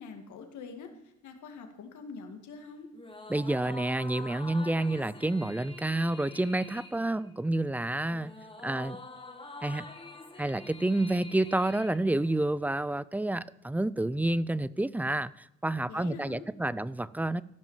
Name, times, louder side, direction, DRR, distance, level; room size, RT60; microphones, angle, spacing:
voice 1, 0.0-2.9 15.9-16.4, left 5 dB, 75° left, 2.1 m, -45 dB
sound 1, 2.9-12.6, left 2 dB, 15° left, 1.5 m, -46 dB
voice 2, 3.3-8.3 8.6-9.0 9.6-9.9 10.4-17.4, right 1 dB, 5° right, 0.4 m, -29 dB
15.0 x 6.0 x 7.4 m
cardioid pair, 90°, 30 cm